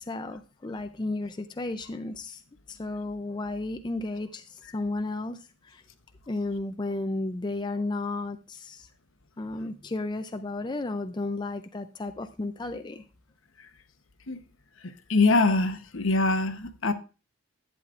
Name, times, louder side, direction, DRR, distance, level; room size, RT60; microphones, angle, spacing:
voice 1, 0.0-2.4 2.7-5.8 6.3-8.9 9.4-13.0, left 2 dB, 20° left, 0.4 m, -33 dB
voice 2, 15.1-16.9, left 3 dB, 70° left, 0.9 m, -23 dB
11.0 x 9.1 x 2.4 m
head